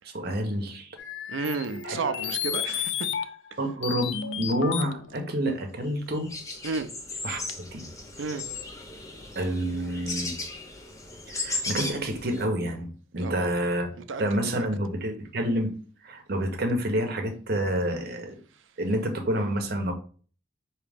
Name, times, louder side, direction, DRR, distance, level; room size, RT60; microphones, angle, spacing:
voice 1, 0.1-1.0 1.8-2.0 3.6-6.3 7.2-7.4 7.7-7.8 9.4-10.3 11.3-12.9 13.1-13.9 14.2-15.7 16.0-18.4 18.8-19.9, right 1 dB, 55° right, 0.8 m, -28 dB
sound 1, 1.0-3.5 3.8-5.3 6.5-6.6 7.5-7.6 8.4-8.6, left 9 dB, 65° left, 0.4 m, -32 dB
voice 2, 1.3-3.1 3.5-3.6 6.6-6.9 8.2-8.4 13.2-13.5 14.1-14.7, right 4 dB, 75° right, 0.5 m, -32 dB
sound 2, 5.9-6.0 6.1-12.5, left 2 dB, 15° left, 0.6 m, -36 dB
5.0 x 2.8 x 3.4 m
head